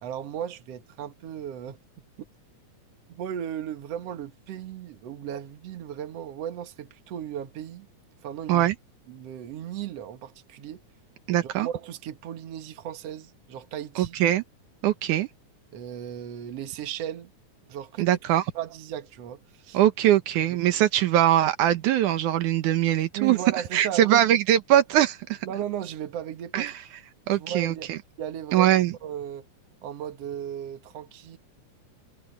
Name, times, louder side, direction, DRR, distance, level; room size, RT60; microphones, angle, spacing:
voice 1, 0.0-1.8 3.1-7.9 8.2-8.7 9.1-10.8 11.4-14.2 15.7-17.3 17.7-18.2 18.5-19.8 20.7-20.8 23.1-24.2 25.4-26.8 27.3-27.9 28.2-29.4 29.8-31.4, right 10 dB, 60° right, 2.3 m, -36 dB
voice 2, 11.3-11.7 14.0-14.4 14.8-15.3 18.0-18.4 19.7-23.4 23.7-25.4 26.5-26.7 27.3-28.0 28.5-28.9, right 12 dB, 80° right, 2.5 m, -22 dB
omnidirectional pair, 3.5 m